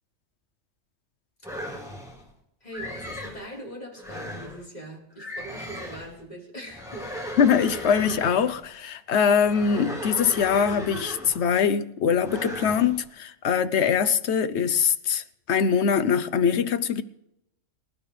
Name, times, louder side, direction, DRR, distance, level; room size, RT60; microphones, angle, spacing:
sound 1, 1.4-2.2 2.7-3.4 4.0-4.6 5.2-6.1 6.7-8.6 9.4-11.5 12.2-13.0, equal, 5° right, 4.1 m, -37 dB
voice 1, 2.6-7.1 7.4-7.7, right 1 dB, 30° left, 4.3 m, -41 dB
voice 2, 7.4-17.0, left 7 dB, 65° left, 1.0 m, -23 dB
26.0 x 12.0 x 3.3 m
omnidirectional pair, 1.3 m